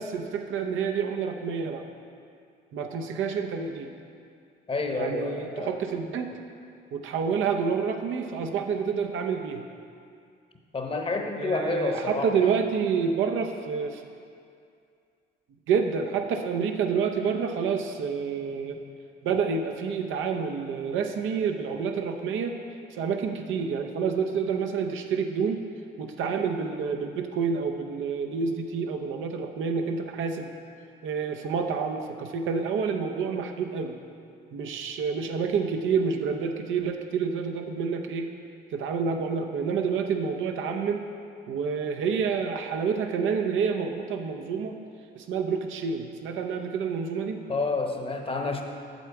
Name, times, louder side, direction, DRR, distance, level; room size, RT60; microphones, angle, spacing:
voice 1, 0.0-1.8 2.7-3.9 4.9-6.3 6.9-9.6 11.4-14.0 15.7-18.8 19.2-22.6 22.9-25.6 26.0-30.5 31.0-33.9 34.5-38.3 38.7-41.0 41.5-44.8 45.1-47.4, right 6 dB, 80° right, 4 dB, 0.7 m, -28 dB
voice 2, 4.7-5.7 10.7-12.5 47.5-48.6, left 3 dB, 30° left, 4 dB, 0.9 m, -29 dB
8.1 x 7.1 x 4.6 m, 2.4 s
cardioid pair, 90°, 20 cm